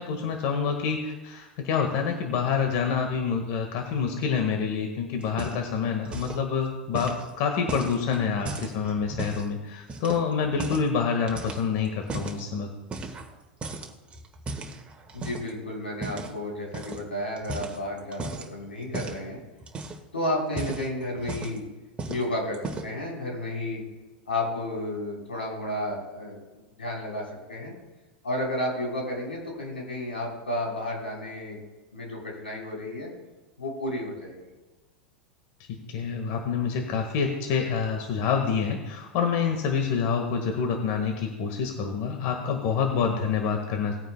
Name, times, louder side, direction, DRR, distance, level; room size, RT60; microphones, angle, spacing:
voice 1, 0.0-12.7 35.9-44.0, left 6 dB, 50° left, 4 dB, 1.6 m, -27 dB
sound 1, 5.2-5.8 6.0-6.4 6.9-9.5 9.9-10.9 11.3-12.4 12.9-13.4 13.6-15.5 16.0-16.3 16.7-17.0 17.4-18.5 18.9-19.2 19.6-20.1 20.4-21.7 22.0-22.3 22.5-23.0, right 3 dB, 20° right, 1.7 m, -36 dB
voice 2, 15.1-19.4 20.1-21.6 22.1-23.8 24.3-26.4 26.8-27.2 27.5-27.7 28.2-31.6 31.9-33.1 33.6-34.4, left 1 dB, 90° left, -2 dB, 3.9 m, -32 dB
19.0 x 9.2 x 2.2 m, 1.2 s
hypercardioid pair, 95°, 5 cm